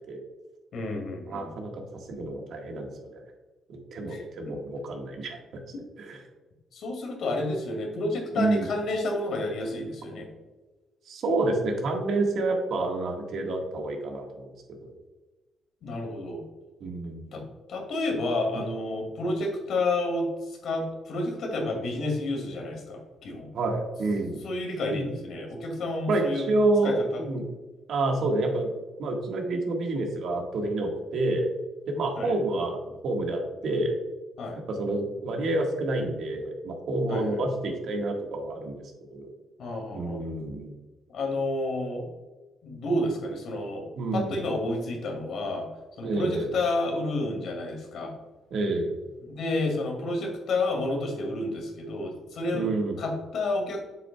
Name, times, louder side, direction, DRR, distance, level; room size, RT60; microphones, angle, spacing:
voice 1, 0.7-1.5 4.1-4.5 6.7-10.3 15.8-16.4 17.3-17.4 17.7-23.5 24.4-26.5 26.8-27.2 32.2-32.3 34.4-34.6 37.1-37.4 39.6-40.2 41.1-42.1 42.6-45.7 46.0-48.2 49.2-52.7 53.0-53.8, left 2 dB, 70° left, 2 dB, 2.2 m, -30 dB
voice 2, 1.3-3.2 3.7-5.4 6.0-6.2 8.3-8.7 11.0-14.9 16.8-17.4 18.5-18.6 23.5-24.4 24.9-25.0 26.1-27.5 27.9-28.7 29.0-31.5 31.8-33.9 34.7-38.7 39.1-39.3 39.9-40.7 44.0-44.4 46.0-46.5 48.5-49.0 52.5-52.9, right 2 dB, 65° right, 2 dB, 1.5 m, -28 dB
7.6 x 6.7 x 2.3 m, 1.2 s
cardioid pair, 90°, 0 cm